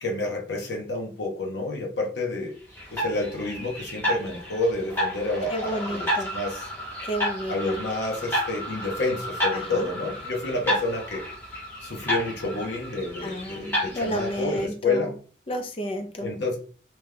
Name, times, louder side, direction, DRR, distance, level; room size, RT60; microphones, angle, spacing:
voice 1, 0.0-2.6 2.9-6.7 7.5-11.2 11.8-15.1 16.2-16.6, left 2 dB, 75° left, 0 dB, 0.8 m, -29 dB
sound 1, 2.8-14.7, equal, 10° left, 0.9 m, -31 dB
voice 2, 5.5-6.3 7.0-7.8 9.5-9.9 13.2-15.1 15.5-16.3, equal, 30° left, 5 dB, 0.5 m, -31 dB
2.9 x 2.3 x 3.3 m, 0.40 s
head